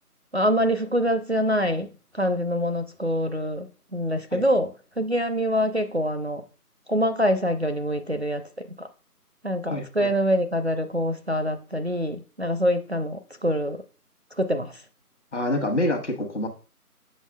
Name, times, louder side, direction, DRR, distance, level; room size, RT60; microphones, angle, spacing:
voice 1, 0.3-1.9 2.1-6.4 6.9-8.9 9.4-13.8 14.4-14.8, equal, 45° right, 0.5 m, -25 dB
voice 2, 9.7-10.1 15.3-16.5, left 1 dB, 50° left, 1.2 m, -27 dB
7.4 x 5.7 x 2.3 m
figure-of-eight pair, 175°, 46 cm